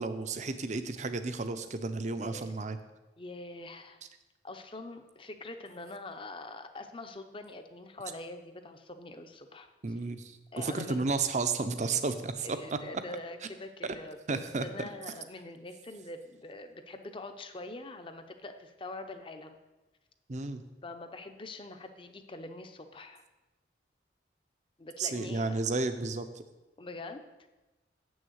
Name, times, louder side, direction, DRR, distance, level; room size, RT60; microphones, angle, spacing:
voice 1, 0.0-2.8 9.8-12.8 13.8-13.9 14.3-14.7 20.3-20.6 25.0-26.4, right 3 dB, 40° right, 10 dB, 0.6 m, -32 dB
voice 2, 2.1-2.5 3.2-4.0 4.4-9.7 10.5-11.0 12.4-19.6 20.8-23.2 24.8-25.5 26.8-27.2, left 2 dB, 30° left, 7 dB, 0.7 m, -44 dB
7.2 x 6.4 x 7.9 m, 1.1 s
head